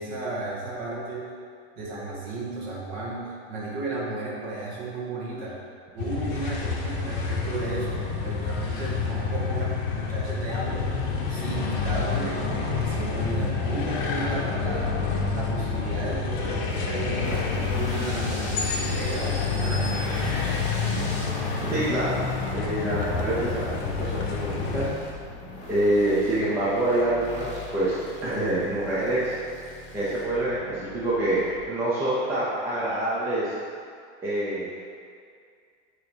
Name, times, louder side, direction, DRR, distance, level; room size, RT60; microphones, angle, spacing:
voice 1, 0.0-1.3 1.8-5.6 5.9-15.0 15.3-20.5, right 2 dB, 40° right, -5 dB, 1.4 m, -34 dB
sound 1, 6.0-24.9, left 4 dB, 50° left, 0.8 m, -28 dB
sound 2, 17.2-31.6, left 2 dB, 20° left, 1.3 m, -40 dB
voice 2, 21.7-22.2 22.5-24.9 25.7-27.9 28.2-29.4 29.9-33.5 34.2-34.7, right 1 dB, 10° right, -10 dB, 0.6 m, -26 dB
6.6 x 3.0 x 5.2 m, 2.2 s
supercardioid pair, 170°, 34 cm